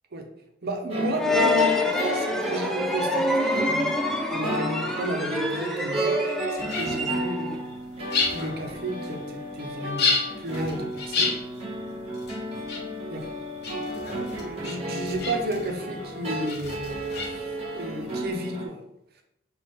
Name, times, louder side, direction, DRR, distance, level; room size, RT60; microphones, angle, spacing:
voice 1, 0.6-4.0 4.3-7.6 8.3-11.4 13.1-13.3 13.7-18.8, right 1 dB, 50° right, 4 dB, 0.7 m, -33 dB
sound 1, 0.9-18.7, right 1 dB, 30° right, 1.0 m, -33 dB
sound 2, 1.1-7.6, left 2 dB, ahead, 0.3 m, -26 dB
sound 3, 6.6-18.3, left 4 dB, 55° left, 0.8 m, -33 dB
5.3 x 2.4 x 3.6 m, 0.83 s
head